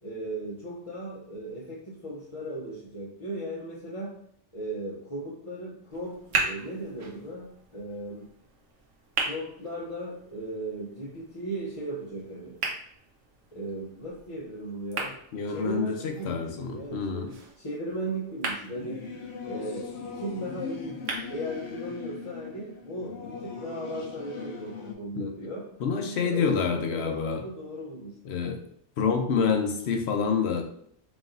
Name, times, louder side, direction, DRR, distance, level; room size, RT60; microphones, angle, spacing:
voice 1, 0.0-4.2 4.5-8.3 9.2-12.6 13.5-15.2 15.5-17.3 17.6-19.1 19.4-25.7 26.2-28.5, right 1 dB, 35° left, -6 dB, 0.7 m, -37 dB
sound 1, 5.9-21.9, right 3 dB, 85° right, 1.2 m, -38 dB
voice 2, 15.3-17.3 25.1-25.3 25.8-27.4 28.2-28.6 29.0-30.6, left 6 dB, 65° left, 5 dB, 0.9 m, -27 dB
Singing / Musical instrument, 18.7-24.9, left 5 dB, 90° left, 1.0 m, -39 dB
4.0 x 3.4 x 2.5 m, 0.67 s
omnidirectional pair, 1.2 m